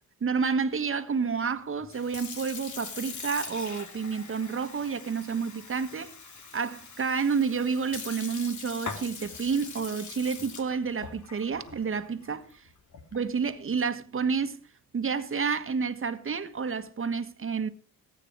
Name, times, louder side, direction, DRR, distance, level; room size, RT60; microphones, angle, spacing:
voice 1, 0.2-6.2 6.5-12.4 13.1-14.6 14.9-17.7, right 5 dB, 40° right, 1.6 m, -29 dB
Sink (filling or washing) / Fill (with liquid), 1.8-13.3, left 5 dB, 60° left, 3.0 m, -42 dB
19.5 x 9.0 x 4.7 m
cardioid pair, 85°, 34 cm